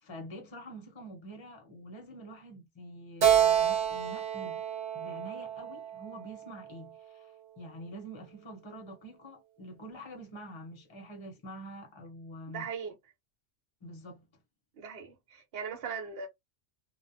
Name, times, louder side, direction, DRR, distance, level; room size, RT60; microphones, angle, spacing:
voice 1, 0.0-4.6 4.9-12.7 13.8-14.2, right 1 dB, 25° left, 0.8 m, -46 dB
Keyboard (musical), 3.2-6.7, right 9 dB, 75° right, 1.1 m, -28 dB
voice 2, 12.5-12.9 14.8-16.3, right 6 dB, 55° right, 1.0 m, -39 dB
2.4 x 2.1 x 2.7 m
omnidirectional pair, 1.2 m